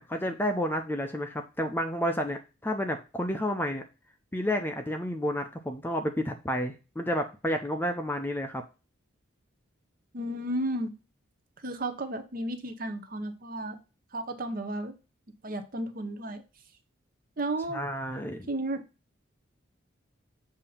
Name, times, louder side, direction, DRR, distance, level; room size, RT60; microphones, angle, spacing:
voice 1, 0.0-3.8 4.3-8.6 17.7-18.5, equal, 10° left, 5 dB, 0.5 m, -30 dB
voice 2, 10.1-10.9 11.6-13.8 14.1-14.9 15.4-16.4 17.4-17.8 18.5-18.8, right 1 dB, 45° right, 8 dB, 0.8 m, -33 dB
6.9 x 2.8 x 5.6 m, 0.30 s
head